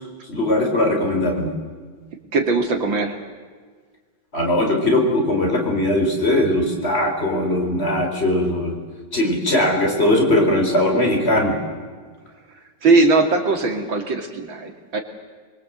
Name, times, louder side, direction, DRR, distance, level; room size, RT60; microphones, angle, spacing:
voice 1, 0.3-1.5 4.3-8.8 9.1-11.6, left 1 dB, 30° left, 1 dB, 4.8 m, -20 dB
voice 2, 2.3-3.2 12.8-15.0, right 3 dB, 75° right, 4 dB, 3.3 m, -19 dB
27.5 x 22.5 x 8.1 m, 1.5 s
omnidirectional pair, 2.1 m